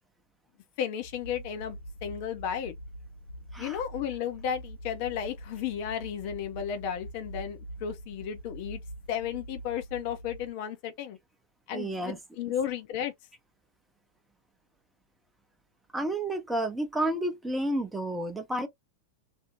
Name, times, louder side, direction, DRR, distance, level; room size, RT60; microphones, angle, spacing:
voice 1, 0.8-2.7 3.6-8.8 9.1-11.2 11.7-13.1, left 9 dB, 45° left, 0.5 m, -34 dB
sound 1, 1.0-10.5, right 1 dB, 90° right, 0.6 m, -44 dB
voice 2, 11.7-12.2 15.9-18.7, right 1 dB, 5° right, 0.6 m, -30 dB
2.5 x 2.0 x 2.9 m
figure-of-eight pair, 90°, 0 cm